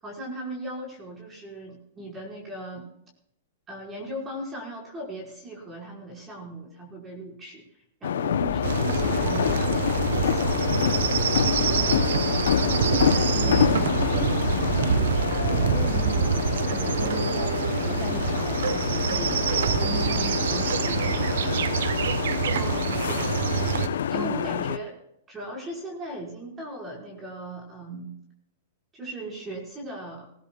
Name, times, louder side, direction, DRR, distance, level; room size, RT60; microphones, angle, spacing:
voice 1, 0.0-2.9 3.7-10.8 22.5-23.4 24.1-25.0 25.3-28.1 28.9-30.3, right 1 dB, 20° right, -2 dB, 5.1 m, -38 dB
sound 1, 8.0-24.8, left 9 dB, 80° left, 0.8 m, -27 dB
sound 2, 8.5-16.3, left 9 dB, 45° left, 3.4 m, -36 dB
sound 3, 8.6-23.9, right 8 dB, 75° right, 1.0 m, -26 dB
voice 2, 11.7-21.8 24.1-24.6, right 1 dB, ahead, 5 dB, 0.8 m, -39 dB
19.5 x 15.5 x 2.4 m, 0.73 s
hypercardioid pair, 140°, 0 cm